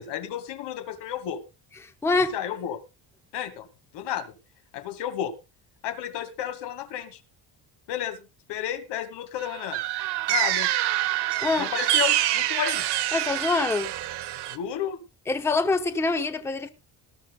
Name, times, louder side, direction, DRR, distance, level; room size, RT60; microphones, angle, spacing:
voice 1, 0.0-1.4 2.3-2.8 3.3-3.7 3.9-4.3 4.7-5.3 5.8-7.2 7.9-8.2 8.5-9.8 10.3-10.7 11.6-12.8 14.5-15.0, left 10 dB, 90° left, 2.3 m, -32 dB
voice 2, 1.8-2.3 11.4-11.7 13.1-13.9 15.3-16.7, left 3 dB, 5° left, 0.7 m, -25 dB
sound 1, 9.4-14.6, right 14 dB, 75° right, 1.3 m, -26 dB
19.0 x 13.0 x 2.4 m
cardioid pair, 175°, 40 cm